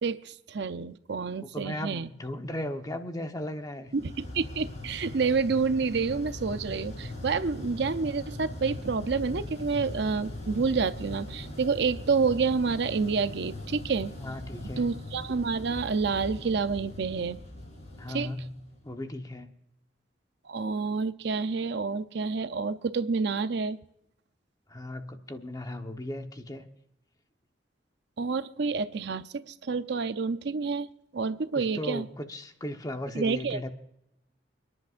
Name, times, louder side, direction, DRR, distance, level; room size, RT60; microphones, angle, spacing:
voice 1, 0.0-2.1 3.9-14.1 14.8-17.4 18.1-18.4 20.5-23.8 28.2-30.9 31.1-32.1 33.1-33.6, right 4 dB, 65° right, 12 dB, 0.6 m, -28 dB
voice 2, 1.4-3.9 14.2-14.9 18.0-18.5 18.8-19.5 24.7-26.6 31.5-33.7, left 1 dB, 20° left, 5 dB, 1.1 m, -36 dB
sound 1, 3.9-19.0, left 1 dB, 40° left, 4.3 m, -40 dB
29.5 x 11.0 x 2.5 m, 0.79 s
head